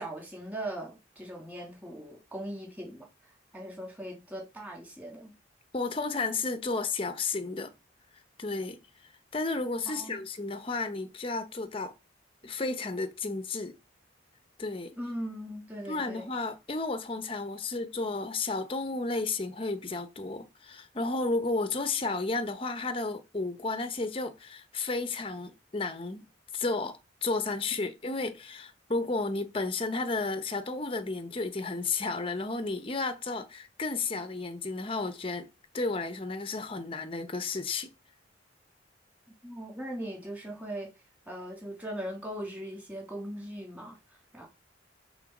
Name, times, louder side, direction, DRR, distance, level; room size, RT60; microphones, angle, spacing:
voice 1, 0.0-5.4 9.9-10.2 15.0-16.3 39.4-40.9 41.3-44.0 44.3-44.5, right 1 dB, 10° right, 2.7 m, -39 dB
voice 2, 5.7-7.7 8.4-8.8 9.3-11.9 12.4-13.8 14.6-15.0 15.9-26.3 26.5-35.5 35.7-37.9, left 3 dB, 30° left, 0.8 m, -32 dB
6.1 x 3.9 x 5.9 m
head